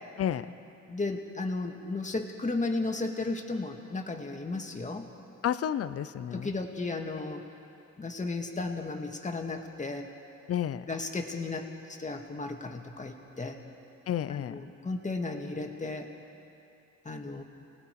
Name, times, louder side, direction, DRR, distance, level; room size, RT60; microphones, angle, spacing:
voice 1, 0.2-0.6 5.4-6.5 10.5-10.8 14.1-14.6, left 10 dB, 50° left, 14 dB, 0.7 m, -31 dB
voice 2, 0.9-5.1 6.3-7.4 8.0-10.1 10.9-13.6 14.5-16.1 17.0-17.4, left 3 dB, 25° left, 3 dB, 2.1 m, -34 dB
29.5 x 19.0 x 4.9 m, 2.7 s
cardioid pair, 90°, 30 cm